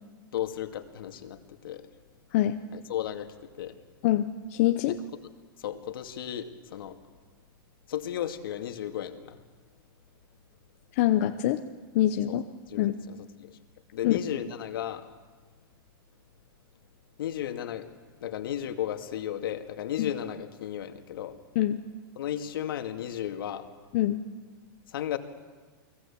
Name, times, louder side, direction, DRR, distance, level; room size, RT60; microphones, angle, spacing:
voice 1, 0.3-1.9 2.7-3.8 4.9-5.3 5.6-7.0 7.9-9.4 12.3-12.4 12.7-13.6 13.9-15.1 17.2-17.9 18.2-21.4 22.2-23.7 24.9-25.2, left 11 dB, 70° left, 7 dB, 2.3 m, -34 dB
voice 2, 4.0-5.0 11.0-11.6 11.9-12.4 12.8-12.9 14.0-14.2 20.0-20.1 21.6-21.8 23.9-24.2, left 13 dB, 35° left, 6 dB, 0.8 m, -24 dB
29.5 x 21.0 x 8.7 m, 1.4 s
supercardioid pair, 175°, 12 cm